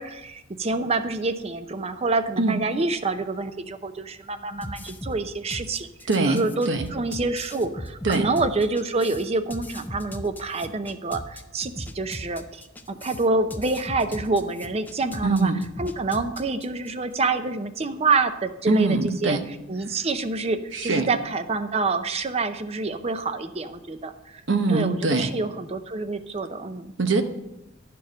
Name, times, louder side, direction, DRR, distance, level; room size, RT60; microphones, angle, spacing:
voice 1, 0.0-5.9 6.2-15.5 15.8-19.4 19.7-24.4 24.7-26.9, right 3 dB, 35° right, 10 dB, 0.6 m, -27 dB
sound 1, 4.6-16.9, equal, 10° left, 0.5 m, -38 dB
voice 2, 6.1-6.9 8.0-8.3 15.2-15.6 18.7-19.4 20.7-21.1 24.5-25.3 27.0-27.2, right 3 dB, 70° right, 7 dB, 0.9 m, -23 dB
11.5 x 4.6 x 6.2 m, 0.91 s
head